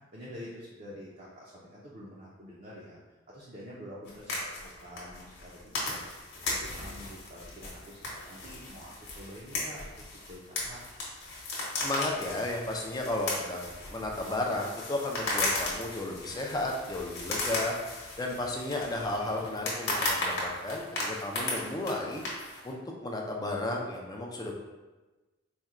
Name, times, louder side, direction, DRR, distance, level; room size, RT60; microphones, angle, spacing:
voice 1, 0.1-3.0 3.3-10.8 18.6-19.5, equal, 35° right, -6 dB, 0.5 m, -47 dB
sound 1, 4.0-22.7, left 2 dB, 50° left, 1.0 m, -36 dB
voice 2, 11.8-17.7 18.2-22.2 22.6-24.5, left 2 dB, 15° left, 0 dB, 0.4 m, -33 dB
4.3 x 2.2 x 3.6 m, 1.2 s
head